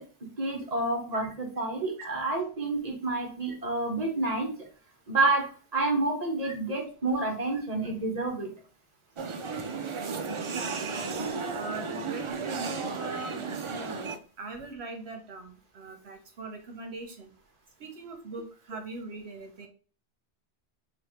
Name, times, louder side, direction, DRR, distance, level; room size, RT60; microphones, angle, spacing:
voice 1, 0.0-4.5 5.1-8.5 11.1-11.4, right 2 dB, 40° right, 0 dB, 1.2 m, -29 dB
sound 1, 9.2-14.1, right 4 dB, 55° right, 0.3 m, -34 dB
voice 2, 11.5-14.1 14.4-17.3 17.8-19.7, right 3 dB, 70° right, 3 dB, 1.1 m, -41 dB
3.2 x 2.6 x 4.3 m, 0.39 s
omnidirectional pair, 1.1 m